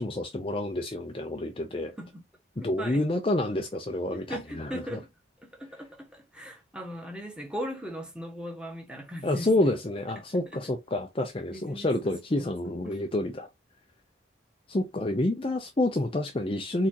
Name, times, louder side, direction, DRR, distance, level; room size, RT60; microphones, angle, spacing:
voice 1, 0.0-1.9 2.6-5.0 9.2-13.5 14.7-16.9, left 1 dB, 25° left, 0.5 m, -28 dB
voice 2, 2.6-3.1 4.1-5.1 5.4-9.7 10.3-10.7 11.5-12.5 12.8-13.0, equal, 5° right, 1.4 m, -39 dB
4.3 x 4.2 x 2.8 m
head